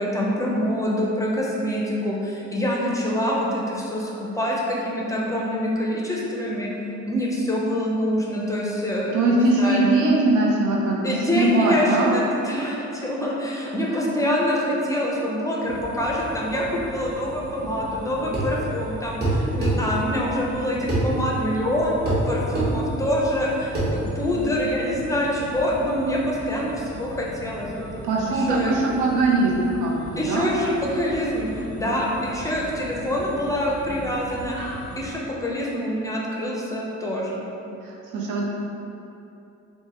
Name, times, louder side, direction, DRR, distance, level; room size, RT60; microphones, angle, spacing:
voice 1, 0.0-6.7 7.1-9.8 11.0-27.9 28.3-28.7 30.2-34.6 35.0-37.4, equal, 10° left, -4 dB, 0.5 m, -25 dB
voice 2, 9.1-12.2 13.9-14.0 28.0-30.5 37.8-38.5, right 2 dB, 80° right, -3 dB, 0.7 m, -21 dB
sound 1, 15.6-35.1, right 1 dB, 65° right, 1.5 m, -39 dB
sound 2, 18.3-18.5 19.2-19.8 20.9-21.1 22.0-22.2 22.5-22.7 23.7-23.9, right 2 dB, 35° right, 1.3 m, -23 dB
4.4 x 2.2 x 2.9 m, 2.8 s
cardioid pair, 90°, 30 cm